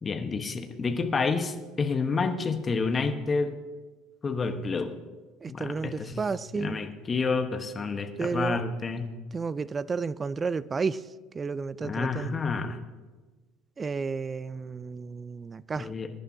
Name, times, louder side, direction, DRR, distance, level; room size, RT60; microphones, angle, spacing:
voice 1, 0.0-3.5 4.2-4.9 5.5-6.2 6.5-9.1 11.8-12.8 15.8-16.1, left 4 dB, 30° left, 7 dB, 1.3 m, -29 dB
voice 2, 5.4-6.8 8.2-8.6 9.3-11.0 11.3-12.3 13.8-15.9, right 4 dB, 25° right, 19 dB, 0.4 m, -32 dB
21.5 x 11.0 x 2.9 m, 1.3 s
figure-of-eight pair, 65°, 0 cm